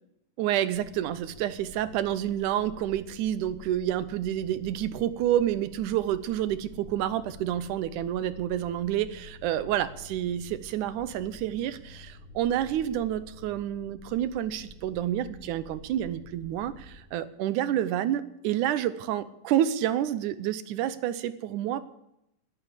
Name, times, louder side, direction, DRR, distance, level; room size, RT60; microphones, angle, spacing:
voice 1, 0.4-21.9, right 11 dB, 75° right, 13 dB, 2.2 m, -29 dB
sound 1, 0.7-17.0, equal, 25° right, 2.3 m, -50 dB
11.0 x 11.0 x 8.3 m, 0.82 s
omnidirectional pair, 3.7 m